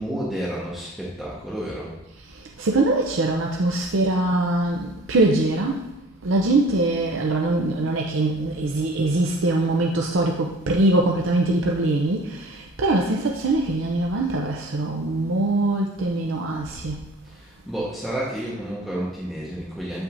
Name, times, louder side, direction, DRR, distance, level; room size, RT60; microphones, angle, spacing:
voice 1, 0.0-1.9 4.2-4.3 17.2-20.0, right 1 dB, ahead, 1.2 m, -31 dB
voice 2, 2.2-5.9 6.2-17.0, right 2 dB, 70° right, 0.6 m, -23 dB
8.3 x 5.8 x 2.6 m
head